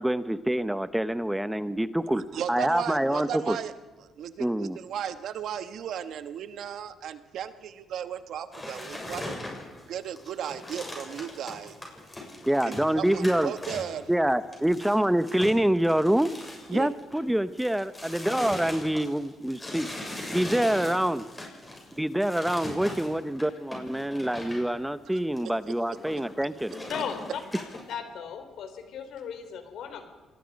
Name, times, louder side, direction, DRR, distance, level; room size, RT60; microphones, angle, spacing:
voice 1, 0.0-2.2 2.5-3.6 4.4-4.8 12.5-13.5 14.1-16.3 16.7-19.9 20.3-21.3 22.0-26.7, right 1 dB, 5° right, 13 dB, 0.9 m, -26 dB
voice 2, 2.1-3.7 4.2-9.3 9.9-11.8 12.7-14.1 16.7-16.9, right 9 dB, 75° right, 11 dB, 1.2 m, -35 dB
sound 1, 8.5-17.3 17.5-24.7 25.2-25.4 25.7-27.9, left 1 dB, 15° left, 7.2 m, -40 dB
voice 3, 26.9-30.1, left 7 dB, 75° left, 7 dB, 3.5 m, -37 dB
27.0 x 20.0 x 5.3 m, 1.3 s
cardioid pair, 90°, 0 cm